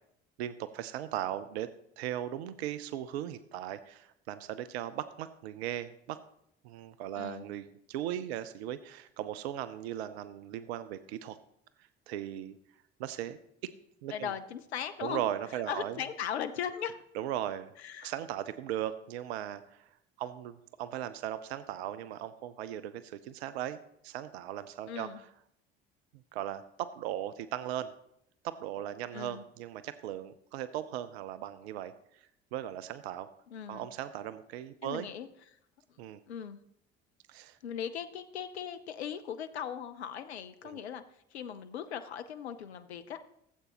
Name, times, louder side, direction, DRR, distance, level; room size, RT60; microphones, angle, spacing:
voice 1, 0.4-1.7 2.0-6.2 6.6-11.4 12.1-12.6 13.0-13.7 14.0-14.3 15.0-16.0 17.1-17.7 18.0-19.9 20.2-23.8 24.0-25.1 26.3-27.9 28.4-33.3 33.7-35.1 36.0-36.2 37.3-37.6 40.6-40.8, right 11 dB, 75° right, 13 dB, 0.6 m, -38 dB
voice 2, 7.2-7.5 14.1-15.2 15.5-17.0 17.8-18.1 24.9-25.2 29.1-29.4 33.5-33.9 34.8-35.3 36.3-36.6 37.6-43.2, left 8 dB, 90° left, 10 dB, 0.6 m, -38 dB
15.5 x 8.0 x 2.9 m, 0.73 s
hypercardioid pair, 55°, 32 cm